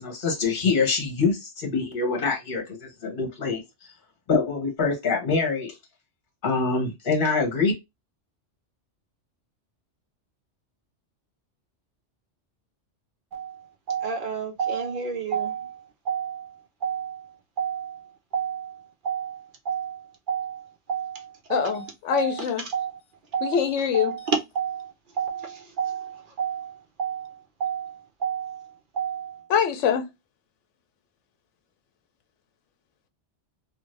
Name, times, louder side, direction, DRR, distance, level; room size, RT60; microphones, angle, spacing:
voice 1, 0.0-3.6 4.3-5.7 6.4-7.7, left 4 dB, 50° left, 1.1 m, -25 dB
voice 2, 13.3-23.0 23.3-23.6 23.9-29.5, right 7 dB, 55° right, 0.7 m, -31 dB
voice 3, 21.5-22.6 23.4-24.2 29.5-30.1, left 8 dB, 85° left, 0.9 m, -24 dB
2.6 x 2.4 x 3.1 m
omnidirectional pair, 1.2 m